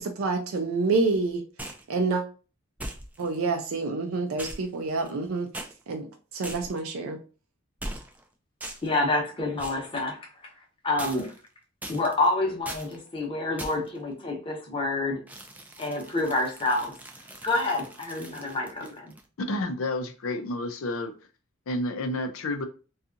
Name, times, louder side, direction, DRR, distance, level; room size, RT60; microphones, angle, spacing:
voice 1, 0.0-1.4 1.9-2.2 3.2-5.5 5.9-7.2, right 3 dB, 80° right, 0.4 m, -27 dB
sound 1, 1.6-1.9 2.8-3.4 4.4-5.2 5.5-5.7 6.4-6.9 7.8-8.2 8.6-9.0 9.6-9.9 11.0-11.5 11.8-12.3 12.6-13.0 13.6-14.0 15.3-19.2, right 1 dB, 10° right, 0.3 m, -40 dB
voice 2, 8.8-10.3 10.8-11.3 11.9-15.2 15.8-16.9 17.4-19.1, left 2 dB, 25° left, 0.8 m, -28 dB
voice 3, 19.4-21.1 21.7-22.7, left 2 dB, 85° left, 0.5 m, -30 dB
2.7 x 2.3 x 2.5 m
head